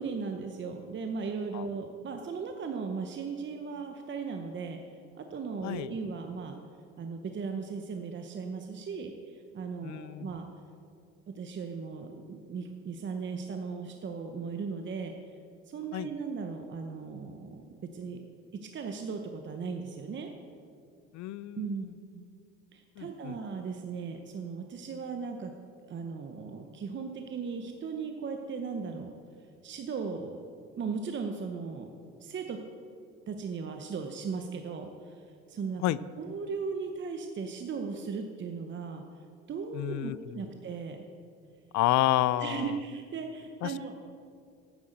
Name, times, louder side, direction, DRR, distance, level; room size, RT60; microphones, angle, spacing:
voice 1, 0.0-4.8 5.1-6.6 7.0-10.5 11.4-15.1 15.7-18.2 18.7-20.3 21.6-21.9 22.1-22.3 22.7-25.5 25.9-29.1 29.6-30.4 30.8-31.9 32.2-32.6 33.3-35.2 35.5-39.0 39.5-41.0 42.4-44.0, right 5 dB, 40° right, 5 dB, 0.9 m, -37 dB
voice 2, 9.8-10.3 15.9-16.1 21.1-21.9 23.0-23.4 35.8-36.0 39.7-40.4 41.7-42.7 43.6-43.7, left 15 dB, 70° left, 19 dB, 0.5 m, -30 dB
9.5 x 7.9 x 7.7 m, 2.4 s
cardioid pair, 100°, 30 cm